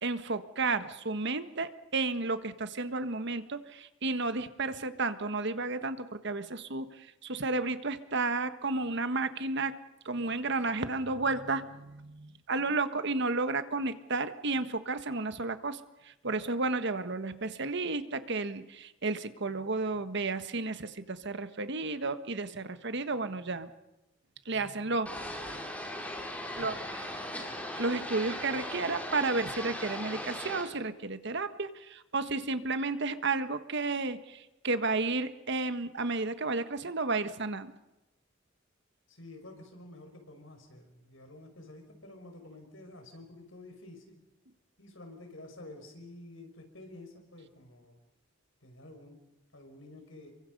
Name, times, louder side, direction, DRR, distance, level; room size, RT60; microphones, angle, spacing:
voice 1, 0.0-9.7 10.0-23.7 24.4-25.9 26.5-27.1 27.7-37.7, right 3 dB, 60° right, 10 dB, 1.5 m, -32 dB
sound 1, 25.1-30.6, left 1 dB, 10° left, 5.0 m, -38 dB
voice 2, 39.1-44.2 44.8-47.9 48.6-49.2 49.5-50.3, left 2 dB, 80° left, 4 dB, 5.7 m, -50 dB
29.5 x 23.5 x 5.4 m, 0.94 s
head